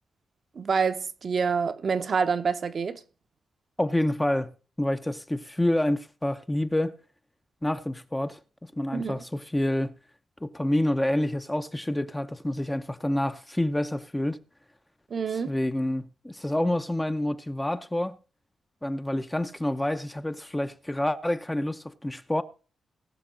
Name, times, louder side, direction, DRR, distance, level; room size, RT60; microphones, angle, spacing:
voice 1, 0.6-3.0 8.9-9.2 15.1-15.5, right 5 dB, 50° right, 0.9 m, -27 dB
voice 2, 3.8-4.5 4.8-6.9 7.6-8.4 8.8-9.9 10.4-14.4 15.5-18.2 18.8-22.4, left 1 dB, 10° left, 0.7 m, -28 dB
19.5 x 7.0 x 3.8 m
cardioid pair, 105°, 0 cm